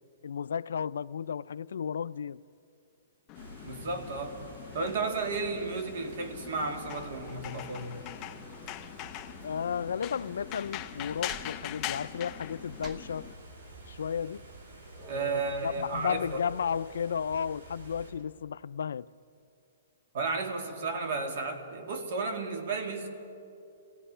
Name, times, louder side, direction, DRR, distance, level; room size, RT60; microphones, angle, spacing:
voice 1, 0.2-2.4 9.4-13.2 13.9-14.4 15.1-19.1, left 7 dB, 80° left, 0.4 m, -33 dB
sound 1, 3.3-13.3, left 14 dB, 20° left, 0.5 m, -42 dB
sound 2, 3.3-18.1, right 2 dB, 90° right, 5.8 m, -49 dB
voice 2, 3.6-4.4 4.7-8.0 15.1-16.4 20.1-23.1, right 3 dB, 45° right, 2.3 m, -33 dB
sound 3, 11.2-15.7, right 2 dB, 15° right, 1.0 m, -52 dB
27.0 x 17.5 x 5.6 m
hypercardioid pair, 175°, 0 cm